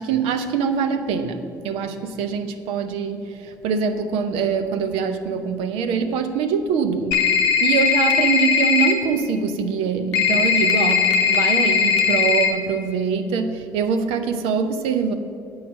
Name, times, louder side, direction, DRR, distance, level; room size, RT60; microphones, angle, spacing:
voice 1, 0.0-7.3 7.6-15.1, right 6 dB, 75° right, 8 dB, 0.7 m, -24 dB
sound 1, 7.1-8.9 10.1-12.5, left 6 dB, 85° left, 0.8 m, -18 dB
8.5 x 4.7 x 7.4 m, 2.5 s
hypercardioid pair, 60°, 10 cm